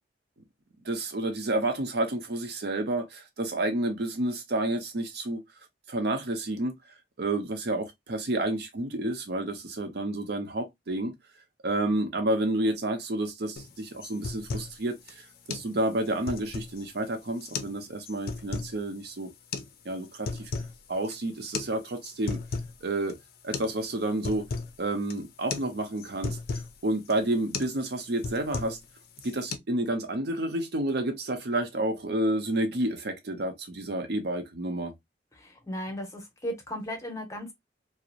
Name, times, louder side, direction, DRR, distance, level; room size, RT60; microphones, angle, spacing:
voice 1, 0.8-5.4 5.9-6.8 7.2-11.1 11.6-19.3 19.8-20.5 20.9-22.4 22.8-23.2 23.4-24.5 24.8-28.8 29.2-34.9, right 1 dB, 60° right, 0.6 m, -30 dB
sound 1, 13.6-13.7 14.0-14.8 15.1-15.2 15.5-15.7 16.1-16.8 17.4-17.8 18.1-18.7 19.5-19.7 20.1-20.8 21.0-21.2 21.5-21.7 22.0-22.8 23.1-23.2 23.5-23.8 24.0-24.7 25.1-25.3 25.5-25.7 26.0-26.7 27.1-27.3 27.5-27.8 28.0-28.9 29.2-29.6, left 4 dB, 55° left, 0.4 m, -34 dB
voice 2, 35.4-37.5, equal, 20° left, 0.8 m, -36 dB
2.8 x 2.0 x 2.4 m
head